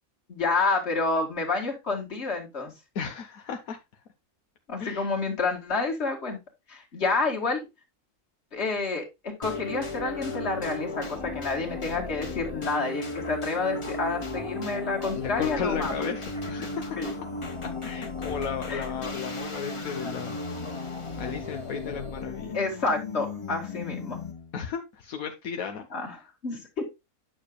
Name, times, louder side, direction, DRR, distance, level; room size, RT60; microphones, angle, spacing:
voice 1, 0.3-2.7 4.7-6.4 6.7-7.7 8.5-15.9 17.0-17.1 18.7-18.8 22.5-24.2 25.9-26.2 26.4-26.9, left 3 dB, 50° left, 1 dB, 2.5 m, -29 dB
voice 2, 2.9-3.8 4.8-5.1 15.1-16.8 17.8-20.4 20.7-20.9 21.2-22.6 24.5-25.9, left 6 dB, 80° left, 5 dB, 1.4 m, -34 dB
sound 1, 9.4-24.5, left 3 dB, 25° left, 1.1 m, -35 dB
9.6 x 6.6 x 2.3 m, 0.23 s
omnidirectional pair, 1.5 m